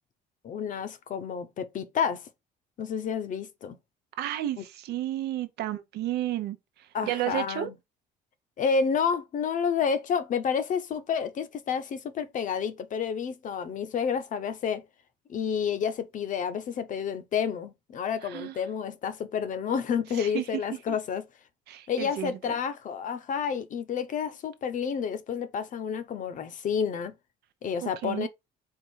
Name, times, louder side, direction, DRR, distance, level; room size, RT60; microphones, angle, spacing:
voice 1, 0.4-2.2 2.8-3.8 6.9-7.7 8.6-14.8 15.3-21.2 21.9-27.1 27.6-28.3, left 6 dB, 50° left, 0.8 m, -30 dB
voice 2, 4.2-7.7 18.2-18.6 20.1-20.6 20.9-21.0 21.7-22.6 27.8-28.3, right 13 dB, 75° right, 0.8 m, -32 dB
4.5 x 2.5 x 4.6 m
cardioid pair, 110°, 17 cm